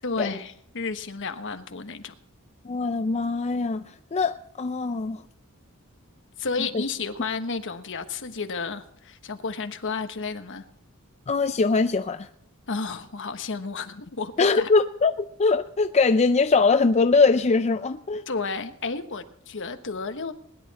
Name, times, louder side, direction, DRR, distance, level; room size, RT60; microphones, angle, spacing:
voice 1, 0.0-2.1 6.4-10.6 12.7-14.7 18.3-20.3, left 4 dB, 60° left, 8 dB, 1.2 m, -32 dB
voice 2, 2.7-3.8 4.1-5.2 6.7-6.8 11.3-12.3 14.4-18.2, left 4 dB, 30° left, 9 dB, 0.5 m, -22 dB
20.5 x 11.0 x 4.2 m, 0.70 s
head